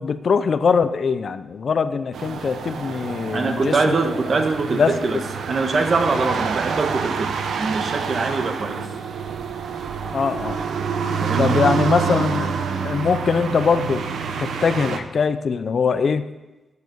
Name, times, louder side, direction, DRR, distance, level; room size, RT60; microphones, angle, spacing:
voice 1, 0.0-4.0 4.7-5.2 10.1-10.6 11.3-14.0 14.4-16.3, left 5 dB, 60° left, 12 dB, 0.6 m, -22 dB
sound 1, 2.1-15.0, right 6 dB, 75° right, 0.9 m, -27 dB
voice 2, 3.3-5.2 5.5-7.3 7.6-8.9 11.2-11.8, right 3 dB, 50° right, 6 dB, 1.4 m, -23 dB
8.5 x 6.7 x 8.3 m, 1.1 s
cardioid pair, 75°, 0 cm